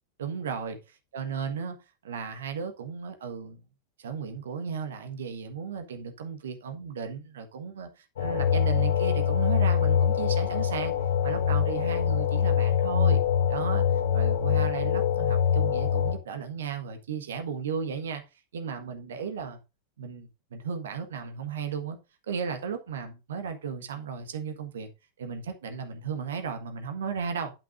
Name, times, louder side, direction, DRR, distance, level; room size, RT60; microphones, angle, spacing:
voice 1, 0.2-0.8 1.1-1.8 2.0-3.6 4.0-10.9 11.2-13.2 13.5-13.8 14.1-18.2 18.5-19.6 20.0-22.0 22.3-24.9 25.2-27.5, right 6 dB, 65° right, 1.4 m, -35 dB
sound 1, 8.2-16.1, left 8 dB, 60° left, 1.5 m, -24 dB
9.0 x 8.9 x 2.6 m
figure-of-eight pair, 90°, 0 cm